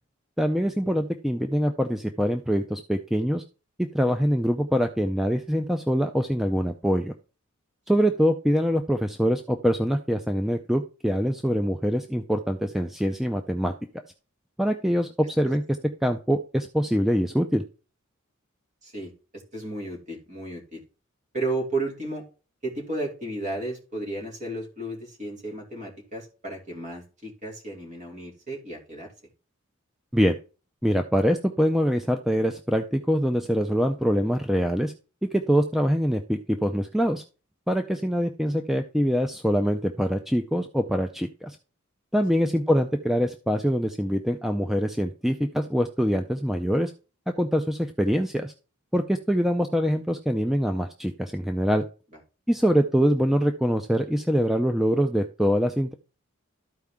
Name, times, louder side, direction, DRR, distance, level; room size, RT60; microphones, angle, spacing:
voice 1, 0.4-3.4 3.8-7.1 7.9-13.7 14.6-17.6 30.1-30.4 30.8-34.9 35.3-37.2 37.7-41.6 42.1-46.9 47.4-48.5 48.9-51.8 52.5-55.9, equal, ahead, 6 dB, 0.4 m, -24 dB
voice 2, 18.8-20.8 21.3-22.2 22.6-29.1, right 2 dB, 35° right, -1 dB, 2.6 m, -33 dB
13.0 x 4.6 x 3.6 m, 0.35 s
head